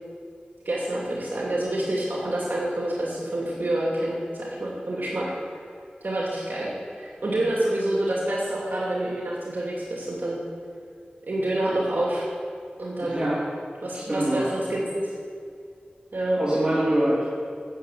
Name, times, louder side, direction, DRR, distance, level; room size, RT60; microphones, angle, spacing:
voice 1, 0.6-5.2 6.0-6.7 7.0-10.4 11.3-12.3 12.8-13.3 13.8-15.0 16.1-16.4, right 1 dB, 75° right, -5 dB, 2.6 m, -27 dB
voice 2, 13.0-13.4 13.9-14.4 16.4-17.3, right 1 dB, 30° right, -9 dB, 3.2 m, -24 dB
13.0 x 7.5 x 8.4 m, 2.3 s
wide cardioid pair, 70°, 3 cm